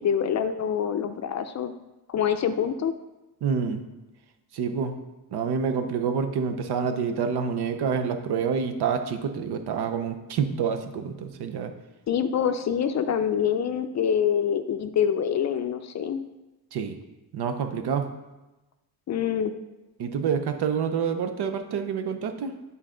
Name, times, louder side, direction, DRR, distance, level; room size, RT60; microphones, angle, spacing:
voice 1, 0.0-1.7 2.1-2.9 12.1-16.2 19.1-19.5, left 8 dB, 45° left, 10 dB, 0.4 m, -25 dB
voice 2, 3.4-3.8 4.5-4.9 5.3-11.7 16.7-17.0 17.3-18.1 20.0-22.6, right 6 dB, 85° right, 7 dB, 0.8 m, -27 dB
9.6 x 4.1 x 3.8 m, 1.0 s
wide cardioid pair, 135°, 38 cm